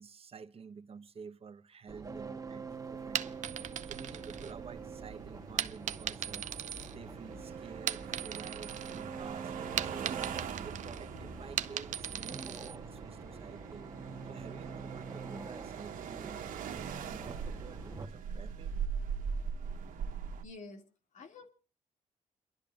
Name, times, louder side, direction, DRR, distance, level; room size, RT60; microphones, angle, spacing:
voice 1, 0.0-3.4 3.9-6.6 6.9-10.3 10.5-13.9 14.2-18.7, right 6 dB, 45° right, 1.1 m, -50 dB
sound 1, 1.9-18.1, right 4 dB, 25° right, 1.4 m, -45 dB
sound 2, 2.9-20.4, right 6 dB, 85° right, 1.3 m, -42 dB
sound 3, 3.0-4.9 5.6-7.4 7.7-9.0 9.3-12.8, right 10 dB, 65° right, 0.7 m, -38 dB
voice 2, 20.4-21.5, left 3 dB, 65° left, 2.5 m, -50 dB
29.5 x 12.0 x 2.5 m
cardioid pair, 80°, 14 cm